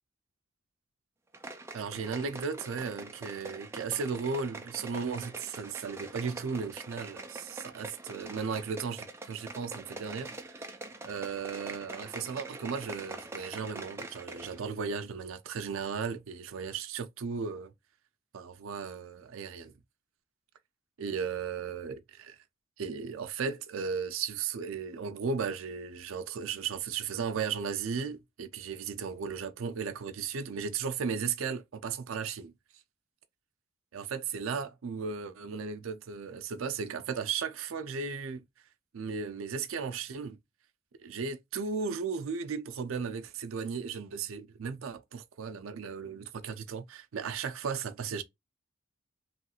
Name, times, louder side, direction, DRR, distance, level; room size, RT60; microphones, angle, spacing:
sound 1, 1.3-14.6 14.9-15.0, right 2 dB, 10° right, 0.3 m, -44 dB
voice 1, 1.7-10.7 11.0-17.7 18.3-19.7 21.0-22.4 22.8-32.5 33.9-38.4 38.9-40.4 41.0-48.2, right 5 dB, 75° right, 0.4 m, -35 dB
3.0 x 2.4 x 2.8 m
head